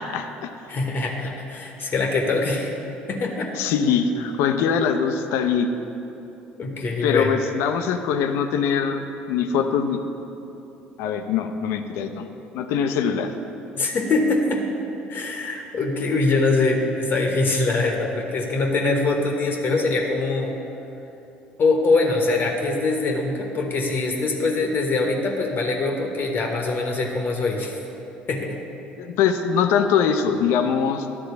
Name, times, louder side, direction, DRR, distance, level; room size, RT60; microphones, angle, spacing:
voice 1, 0.0-0.5 3.6-5.7 7.0-10.0 11.0-12.3 12.5-13.3 29.0-31.1, left 7 dB, 65° left, 7 dB, 0.6 m, -22 dB
voice 2, 0.7-2.7 3.1-3.5 6.6-7.4 13.8-14.6 15.1-20.5 21.6-27.8 28.3-28.6, left 3 dB, 45° left, 1 dB, 1.0 m, -23 dB
11.0 x 3.8 x 6.8 m, 2.9 s
hypercardioid pair, 60°, 5 cm